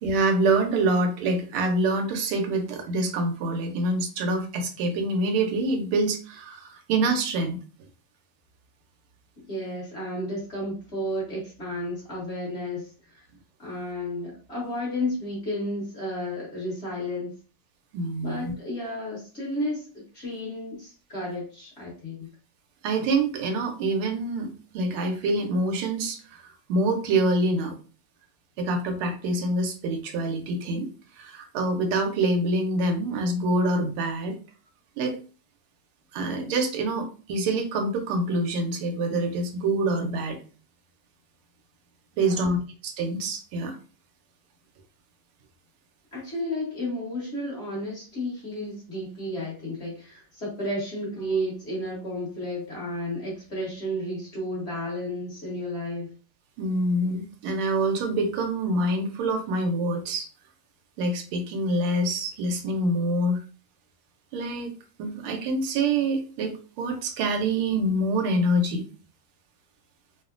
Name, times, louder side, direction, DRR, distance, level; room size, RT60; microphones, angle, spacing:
voice 1, 0.0-7.6 17.9-18.5 22.8-27.8 28.6-30.9 31.2-34.3 35.0-35.2 36.1-40.4 42.2-42.6 42.8-43.8 56.6-60.3 61.0-63.4 64.3-68.8, right 2 dB, 90° right, 4 dB, 1.5 m, -26 dB
voice 2, 9.4-13.2 13.6-17.3 18.2-22.3 42.2-42.6 46.1-56.1, left 1 dB, 40° left, -5 dB, 1.1 m, -32 dB
3.5 x 2.1 x 2.4 m, 0.37 s
omnidirectional pair, 2.3 m